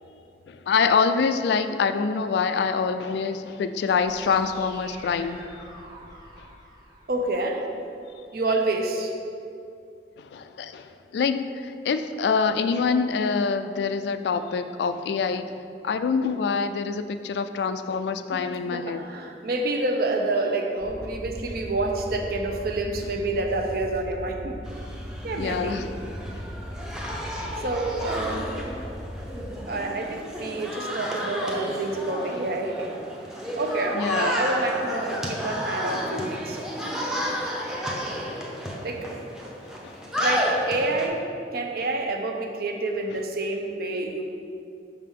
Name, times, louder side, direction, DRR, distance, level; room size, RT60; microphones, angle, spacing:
voice 1, 0.5-5.4 10.2-15.6 15.8-19.0 25.4-25.9 26.3-26.4 33.9-34.4 37.2-37.4 38.3-38.5 39.6-40.0, left 5 dB, 70° left, 10 dB, 0.3 m, -26 dB
sound 1, 4.0-8.0, right 1 dB, 25° right, 1.0 m, -47 dB
voice 2, 7.1-7.7 8.3-9.2 18.3-24.6 25.2-25.8 27.6-28.6 29.7-32.9 33.6-36.7 38.8-39.1 40.2-44.2, right 2 dB, 55° right, 3 dB, 0.6 m, -28 dB
sound 2, 20.8-29.5, equal, 40° right, 1.2 m, -38 dB
sound 3, 24.6-41.1, equal, 5° right, 0.6 m, -32 dB
5.7 x 5.6 x 3.7 m, 2.5 s
head